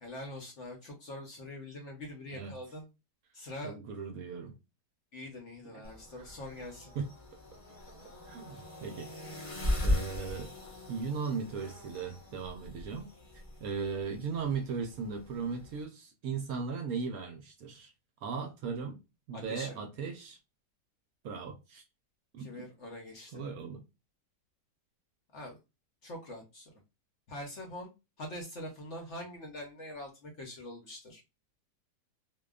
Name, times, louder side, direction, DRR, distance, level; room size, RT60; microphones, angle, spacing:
voice 1, 0.0-2.9 3.3-3.7 5.1-6.9 8.5-8.6 19.3-19.8 22.4-23.4 25.3-25.6 26.0-26.7 27.3-27.9 28.2-31.2, left 1 dB, 55° left, 0.9 m, -44 dB
voice 2, 3.6-4.6 5.7-5.8 6.1-6.3 7.0-7.1 8.3-9.1 9.8-10.5 10.9-13.1 13.6-17.9 18.2-19.0 19.3-20.4 21.2-21.8 22.3-22.7 23.3-23.8, right 5 dB, 70° right, 0.9 m, -37 dB
sound 1, 5.8-15.8, left 1 dB, 35° left, 0.6 m, -39 dB
2.7 x 2.1 x 2.2 m
omnidirectional pair, 1.8 m